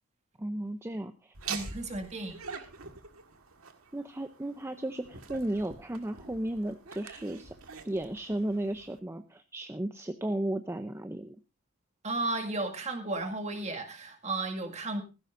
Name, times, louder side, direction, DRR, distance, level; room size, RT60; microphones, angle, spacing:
voice 1, 0.4-1.3 3.9-7.5 7.8-11.4, right 1 dB, 10° right, 8 dB, 0.6 m, -34 dB
Laughter, 1.3-9.0, right 5 dB, 85° right, 1.7 m, -45 dB
voice 2, 1.5-2.4 12.0-15.0, right 2 dB, 35° right, 4 dB, 2.1 m, -34 dB
16.5 x 15.0 x 2.6 m, 0.29 s
head